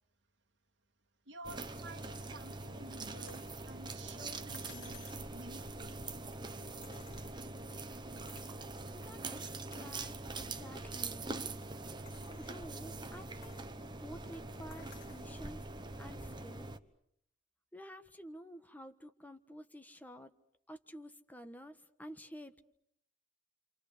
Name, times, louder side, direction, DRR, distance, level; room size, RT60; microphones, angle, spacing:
voice 1, 1.3-6.1, right 2 dB, 70° right, 4 dB, 1.9 m, -52 dB
sound 1, 1.4-16.8, right 3 dB, 25° right, 1.1 m, -43 dB
sound 2, 3.3-3.6 4.5-5.3 6.8-7.6 8.3-8.6 9.1-9.2 9.7-10.2 10.8-10.9 12.1-12.7 13.4-13.7 14.7-15.3 16.5-16.6, left 4 dB, 65° left, 3.0 m, -57 dB
voice 2, 8.9-11.3 12.4-15.6 16.0-16.7 17.7-20.3 20.7-22.5, equal, 10° left, 7 dB, 1.3 m, -51 dB
28.0 x 28.0 x 6.8 m, 0.72 s
head